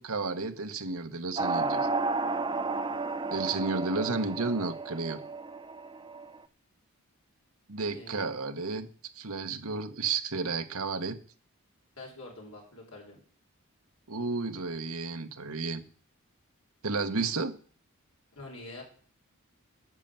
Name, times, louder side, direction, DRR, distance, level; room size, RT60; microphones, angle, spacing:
voice 1, 0.0-1.9 3.3-5.2 7.7-8.9 9.1-11.2 14.1-15.8 16.8-17.5, right 3 dB, 75° right, 8 dB, 1.2 m, -32 dB
sound 1, 1.4-6.4, right 3 dB, 20° right, 0.7 m, -32 dB
voice 2, 7.9-8.3 12.0-13.2 18.3-18.8, left 2 dB, 70° left, -1 dB, 5.2 m, -45 dB
9.8 x 6.8 x 9.0 m, 0.44 s
head